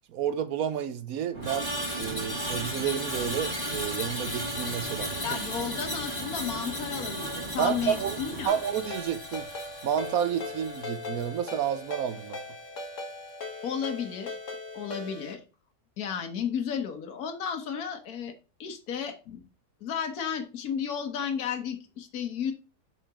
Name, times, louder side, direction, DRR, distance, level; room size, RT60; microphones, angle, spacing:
voice 1, 0.1-1.7 2.0-5.4 7.6-8.2 8.4-9.5 9.8-12.4, right 9 dB, 70° right, 1.2 m, -30 dB
sound 1, 1.3-8.5, right 2 dB, 35° right, 2.8 m, -39 dB
Screech, 1.4-11.8 12.1-12.4, equal, 20° left, 2.9 m, -36 dB
voice 2, 5.2-8.6 13.6-14.4 14.7-15.4 16.0-18.3 18.6-19.4 19.8-22.5, left 7 dB, 70° left, 1.6 m, -33 dB
Ringtone, 8.5-15.3, left 3 dB, 55° left, 1.6 m, -39 dB
7.1 x 5.0 x 3.5 m
omnidirectional pair, 1.7 m